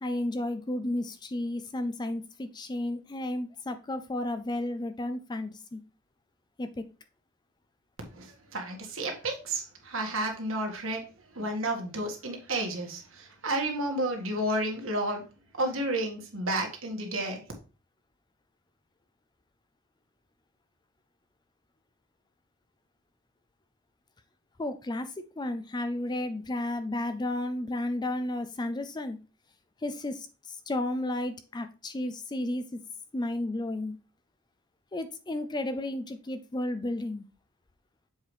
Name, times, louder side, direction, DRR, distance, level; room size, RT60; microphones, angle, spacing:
voice 1, 0.0-5.8 6.6-6.8 24.6-25.1 25.4-29.2 29.8-32.8 33.1-34.0 34.9-37.3, left 1 dB, 20° left, 10 dB, 0.4 m, -33 dB
voice 2, 8.1-11.0 11.3-15.2 15.6-17.4, right 1 dB, 60° right, 2 dB, 1.7 m, -31 dB
7.4 x 4.7 x 3.1 m, 0.34 s
head